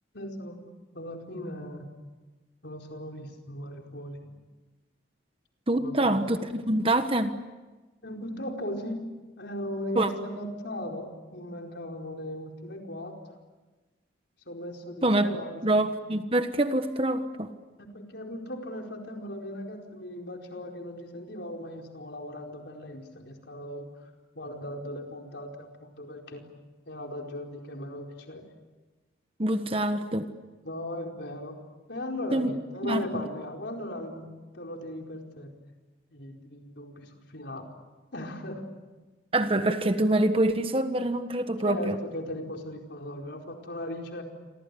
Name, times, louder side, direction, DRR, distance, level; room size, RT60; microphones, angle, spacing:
voice 1, 0.1-0.6 0.9-1.9 2.6-4.4 5.8-6.2 8.0-9.1 9.4-13.1 14.5-15.6 17.9-23.9 24.3-26.5 26.8-28.4 30.6-31.6 31.9-34.3 34.5-35.5 36.1-37.7 38.1-38.6 41.6-44.2, left 1 dB, 65° left, 2 dB, 4.7 m, -38 dB
voice 2, 5.7-7.4 9.9-10.1 15.0-15.3 15.6-17.5 29.4-30.3 32.3-32.5 32.8-33.2 39.3-42.0, right 1 dB, 30° right, 9 dB, 1.3 m, -25 dB
29.0 x 24.5 x 8.5 m, 1.2 s
head